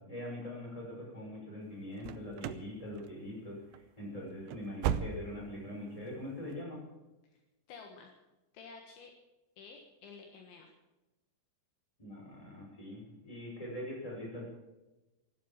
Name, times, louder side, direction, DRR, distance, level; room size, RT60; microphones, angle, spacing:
voice 1, 0.0-6.8 12.0-14.5, left 1 dB, 5° left, -2 dB, 5.7 m, -43 dB
sound 1, 2.0-2.7 3.0-3.4 3.7-3.9 4.3-5.6 5.9-6.0 6.5-6.6, right 10 dB, 85° right, 2.6 m, -36 dB
voice 2, 7.7-8.1 8.5-9.1 9.6-10.7, left 5 dB, 70° left, 3 dB, 3.6 m, -51 dB
14.5 x 12.0 x 7.4 m, 1.0 s
omnidirectional pair, 6.0 m